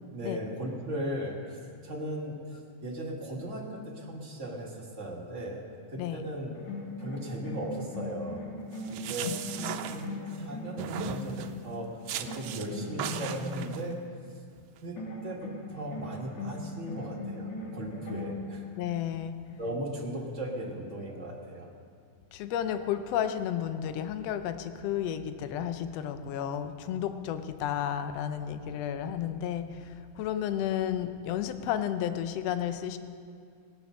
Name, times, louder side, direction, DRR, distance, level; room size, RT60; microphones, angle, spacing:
voice 1, 0.1-5.6 5.9-6.6 7.0-8.4 8.9-14.0 14.8-18.6 19.6-21.7, right 1 dB, 35° right, -2 dB, 1.2 m, -37 dB
sound 1, 6.5-11.7 12.3-13.9 15.0-18.8, left 2 dB, 60° left, 3.6 m, -39 dB
sound 2, 8.7-10.4 10.8-11.6 12.1-12.7 13.0-13.8, right 10 dB, 80° right, 2.1 m, -37 dB
voice 2, 18.8-19.4 22.3-33.0, left 10 dB, 75° left, 9 dB, 1.5 m, -32 dB
18.5 x 9.1 x 6.2 m, 2.3 s
omnidirectional pair, 3.7 m